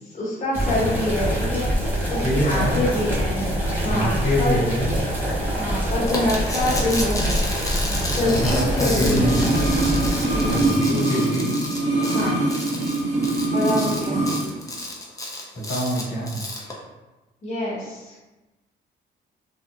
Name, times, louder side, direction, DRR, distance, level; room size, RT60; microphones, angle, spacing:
voice 1, 0.0-1.7 2.1-3.5 3.8-4.6 5.6-7.4 8.1-9.3 10.3-10.7 12.1-12.3 13.5-14.4 17.4-18.1, left 1 dB, 40° left, -8 dB, 0.9 m, -26 dB
sound 1, 0.5-10.7, equal, 10° right, 0.9 m, -25 dB
voice 2, 2.2-2.8 3.9-4.9 8.2-9.6 10.5-11.5 15.5-16.4, equal, 65° left, -7 dB, 1.3 m, -25 dB
sound 2, 6.1-16.7, left 1 dB, 15° left, 0.5 m, -32 dB
sound 3, 9.0-14.5 14.7-14.8, right 2 dB, 70° right, 1.0 m, -23 dB
2.9 x 2.0 x 2.3 m, 1.1 s
cardioid pair, 90°, 20 cm